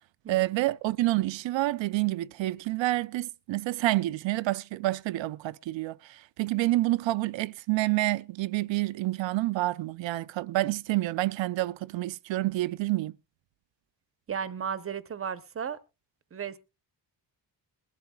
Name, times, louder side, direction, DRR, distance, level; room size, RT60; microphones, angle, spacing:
voice 1, 0.3-13.1, right 17 dB, 85° right, 0.6 m, -28 dB
voice 2, 14.3-15.8 16.3-16.6, right 7 dB, 30° right, 0.7 m, -34 dB
21.5 x 12.0 x 2.3 m
wide cardioid pair, 170°, 44 cm